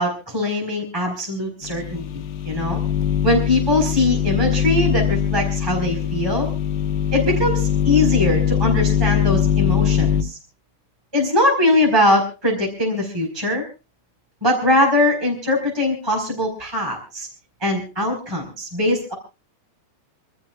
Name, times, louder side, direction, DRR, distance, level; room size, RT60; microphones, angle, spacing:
voice 1, 0.0-2.0 2.4-2.8 3.2-6.5 7.1-10.4 11.1-13.6 14.4-17.3 17.6-19.1, left 1 dB, 5° right, 0 dB, 4.4 m, -21 dB
sound 1, 1.6-10.2, left 8 dB, 85° left, 3.4 m, -21 dB
28.5 x 13.5 x 2.4 m, 0.32 s
omnidirectional pair, 4.8 m